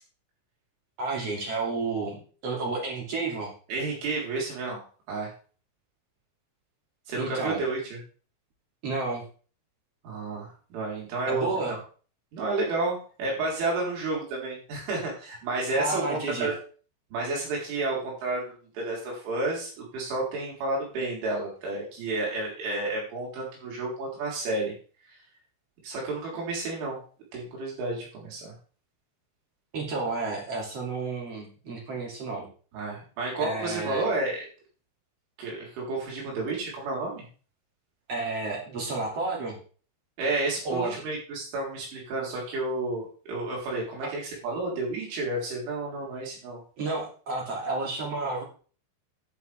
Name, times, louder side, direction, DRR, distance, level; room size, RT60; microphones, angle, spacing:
voice 1, 1.0-3.5 7.2-7.6 8.8-9.2 11.3-11.7 15.7-16.5 29.7-32.5 33.4-34.1 38.1-39.6 40.6-40.9 46.8-48.4, right 3 dB, 40° right, -1 dB, 3.1 m, -31 dB
voice 2, 3.7-5.3 7.1-8.0 10.0-11.8 12.3-16.5 17.1-24.7 25.1-25.2 25.8-27.0 27.3-28.5 32.7-34.5 35.4-37.2 40.2-46.6, right 2 dB, 90° right, -3 dB, 6.4 m, -31 dB
10.5 x 9.5 x 3.5 m, 0.39 s
omnidirectional pair, 5.4 m